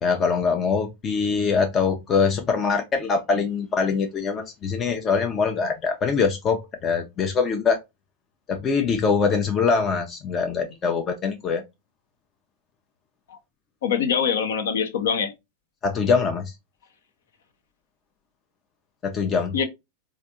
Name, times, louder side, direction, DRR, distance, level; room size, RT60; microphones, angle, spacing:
voice 1, 0.0-7.8 8.5-11.6 15.8-16.5 19.0-19.5, left 5 dB, 25° left, 0.6 m, -23 dB
voice 2, 13.8-15.3 19.5-19.6, left 7 dB, 60° left, 0.8 m, -23 dB
4.2 x 2.5 x 2.6 m
figure-of-eight pair, 90°, 0 cm